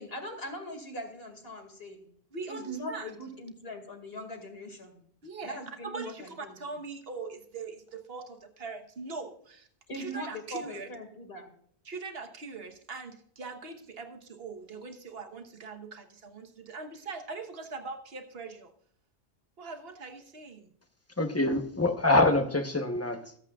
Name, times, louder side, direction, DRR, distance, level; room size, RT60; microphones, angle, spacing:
voice 1, 0.0-2.1 2.5-5.0 5.4-6.6 9.9-11.5, equal, 60° left, 4 dB, 2.5 m, -40 dB
voice 2, 2.3-3.1 5.2-9.7 9.9-10.9 11.8-18.7 19.6-20.7, right 4 dB, 60° right, 6 dB, 1.5 m, -41 dB
voice 3, 21.2-23.2, left 2 dB, 15° left, 6 dB, 1.0 m, -25 dB
25.0 x 8.5 x 2.4 m, 0.63 s
omnidirectional pair, 1.1 m